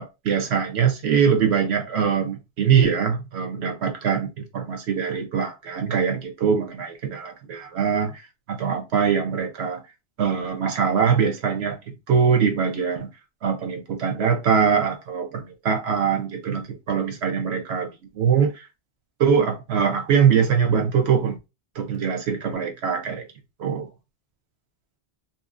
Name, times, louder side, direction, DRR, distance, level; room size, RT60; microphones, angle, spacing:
voice 1, 0.0-9.8 10.2-11.8 12.1-13.1 13.4-17.9 18.1-18.7 19.2-21.4 21.7-23.2 23.6-23.9, right 7 dB, 75° right, 1.0 m, -22 dB
2.8 x 2.6 x 2.4 m
omnidirectional pair, 1.1 m